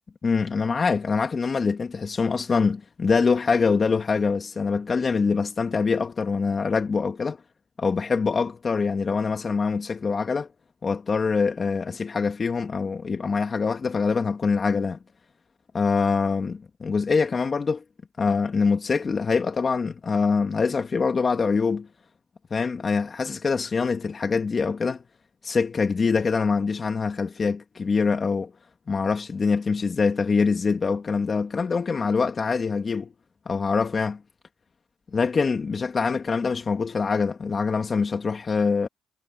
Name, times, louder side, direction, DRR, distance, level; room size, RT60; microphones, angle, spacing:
voice 1, 0.2-7.4 7.8-10.5 10.8-15.0 15.7-17.8 18.2-21.9 22.5-25.0 25.4-28.5 28.9-33.1 33.5-34.2 35.1-38.9, left 5 dB, 35° left, 2.5 m, -24 dB
cardioid pair, 85°, 0 cm